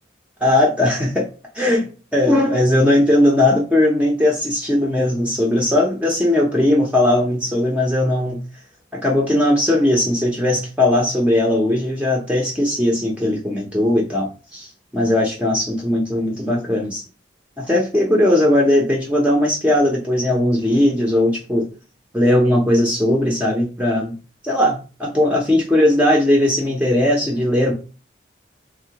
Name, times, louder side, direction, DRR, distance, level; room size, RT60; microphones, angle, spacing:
voice 1, 0.4-1.3 1.5-8.4 8.9-17.0 17.6-21.7 22.1-24.2 24.4-27.7, left 1 dB, 5° right, -2 dB, 0.5 m, -18 dB
3.5 x 2.1 x 2.8 m, 0.34 s
head